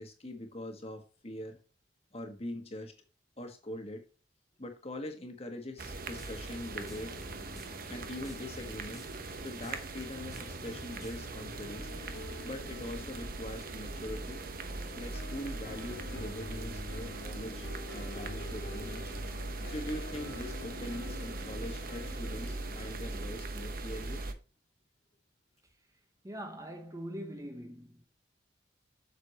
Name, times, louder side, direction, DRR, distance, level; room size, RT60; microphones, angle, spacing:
voice 1, 0.0-1.6 2.1-2.9 3.4-4.0 4.6-7.1 7.9-9.0 9.4-11.9 12.4-14.4 15.0-17.7 17.9-19.1 19.6-24.2, left 1 dB, 35° left, 1.6 m, -42 dB
sound 1, 5.8-11.2, equal, ahead, 1.4 m, -52 dB
sound 2, 5.8-24.3, right 2 dB, 50° right, 1.0 m, -40 dB
sound 3, 5.9-23.0, left 2 dB, 60° left, 0.7 m, -48 dB
voice 2, 26.2-28.0, equal, 20° right, 1.1 m, -42 dB
8.0 x 6.6 x 3.0 m
head